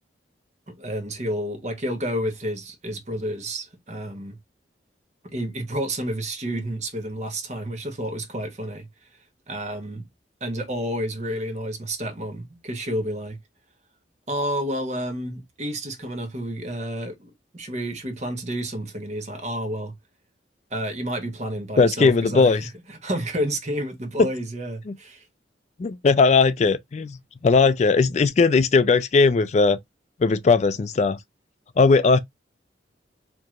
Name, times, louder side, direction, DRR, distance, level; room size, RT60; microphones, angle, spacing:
voice 1, 0.7-4.4 5.2-8.9 9.5-10.0 10.4-13.4 14.3-19.9 20.7-25.2, equal, 40° right, 1.1 m, -30 dB
voice 2, 21.8-22.6 24.2-24.3 24.9-25.0 25.8-27.2 27.4-29.8 30.2-31.2 31.8-32.2, left 4 dB, 40° left, 0.3 m, -18 dB
4.6 x 2.8 x 2.4 m
head